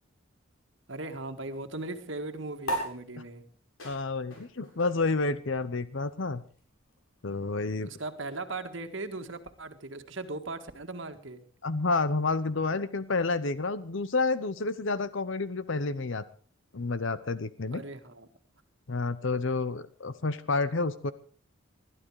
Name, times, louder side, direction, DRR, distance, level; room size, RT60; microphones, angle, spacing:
voice 1, 0.9-3.4 7.8-11.4 17.7-18.3, right 2 dB, 65° right, 7 dB, 1.7 m, -38 dB
sound 1, 2.6-9.4, right 1 dB, 80° left, 7.4 m, -41 dB
voice 2, 3.8-6.4 7.2-7.9 11.6-16.2 16.7-17.8 18.9-21.1, left 3 dB, 65° left, 14 dB, 0.8 m, -29 dB
21.0 x 12.5 x 4.8 m, 0.42 s
head